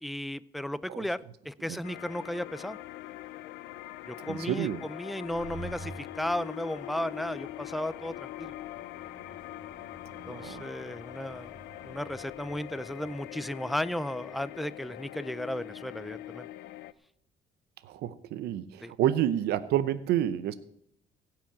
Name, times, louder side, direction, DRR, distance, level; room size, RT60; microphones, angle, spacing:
voice 1, 0.0-2.8 4.1-8.5 10.3-11.5 11.8-16.5 18.8-18.9, left 1 dB, ahead, 16 dB, 0.4 m, -35 dB
sound 1, 1.8-16.9, left 15 dB, 90° left, 0.6 m, -43 dB
voice 2, 4.3-4.8 10.2-10.7 17.8-20.5, right 11 dB, 75° right, 13 dB, 0.7 m, -29 dB
sound 2, 5.2-15.5, right 1 dB, 45° right, 2.5 m, -51 dB
16.5 x 6.0 x 8.7 m, 0.73 s
cardioid pair, 110°, 17 cm